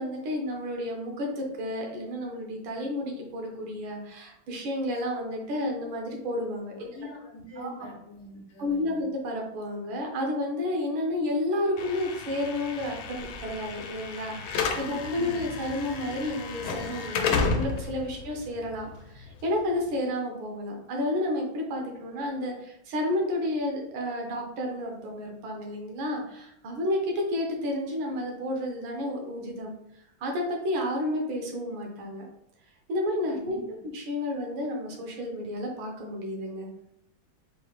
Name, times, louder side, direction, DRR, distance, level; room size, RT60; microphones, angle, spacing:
voice 1, 0.0-6.9 7.6-7.9 8.6-29.7 30.2-32.2 32.9-33.6 33.9-36.7, left 1 dB, 80° right, 1 dB, 1.5 m, -31 dB
voice 2, 6.8-9.0 14.8-15.4 33.3-33.6, left 1 dB, 60° left, -2 dB, 1.5 m, -44 dB
Slam / Alarm, 11.8-19.8, left 5 dB, 85° left, 1.4 m, -32 dB
4.5 x 3.2 x 2.3 m, 0.78 s
omnidirectional pair, 2.2 m